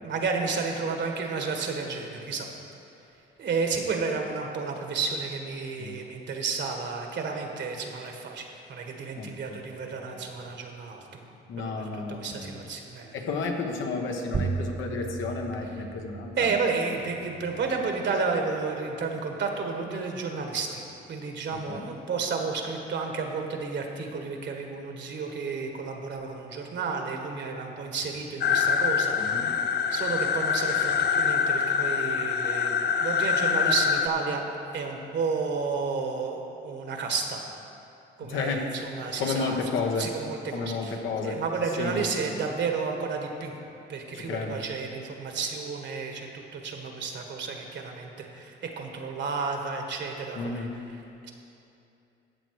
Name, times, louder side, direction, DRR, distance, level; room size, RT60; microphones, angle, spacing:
voice 1, 0.0-2.5 3.4-13.1 16.4-29.6 29.9-34.4 34.7-37.4 38.2-39.6 40.0-43.5 43.9-51.3, right 4 dB, 65° right, 3 dB, 1.6 m, -32 dB
voice 2, 9.2-9.6 11.5-12.6 13.1-16.5 21.7-21.9 29.2-29.5 38.3-38.7 39.2-40.1 40.5-41.4 41.8-42.0 44.1-44.6 50.3-50.8, left 4 dB, 80° left, 2 dB, 1.3 m, -32 dB
sound 1, 14.3-19.4, right 5 dB, 25° right, 0.4 m, -37 dB
sound 2, 28.4-34.1, left 7 dB, 55° left, 0.6 m, -25 dB
13.0 x 8.0 x 4.8 m, 2.8 s
cardioid pair, 90°, 20 cm